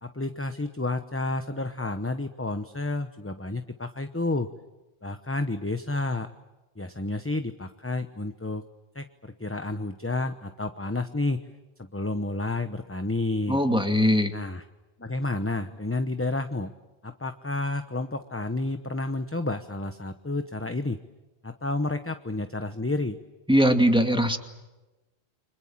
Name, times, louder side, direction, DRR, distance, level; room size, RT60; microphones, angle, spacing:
voice 1, 0.0-4.5 5.0-6.3 6.8-8.6 8.9-11.4 11.8-13.6 14.3-14.6 15.0-16.7 17.0-21.0 21.4-23.2, left 2 dB, 15° left, 8 dB, 0.9 m, -30 dB
voice 2, 13.5-14.3 23.5-24.4, equal, 5° right, 5 dB, 2.3 m, -21 dB
30.0 x 25.5 x 7.4 m, 1.1 s
omnidirectional pair, 1.1 m